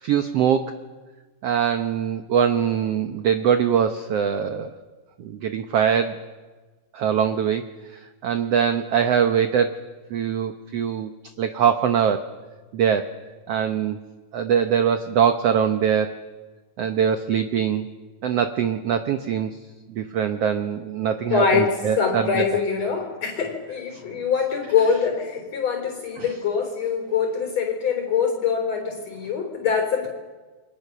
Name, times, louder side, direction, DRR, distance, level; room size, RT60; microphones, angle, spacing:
voice 1, 0.0-0.7 1.4-4.7 5.2-6.2 6.9-7.6 8.2-9.8 10.1-11.1 11.4-12.3 12.7-13.1 13.5-14.0 14.3-16.2 16.8-17.9 18.2-19.5 19.9-22.5 23.9-24.0 26.2-26.3, right 8 dB, 70° right, 8 dB, 1.5 m, -22 dB
voice 2, 21.3-30.1, left 6 dB, 50° left, 2 dB, 5.0 m, -24 dB
28.5 x 23.0 x 6.9 m, 1.3 s
omnidirectional pair, 4.0 m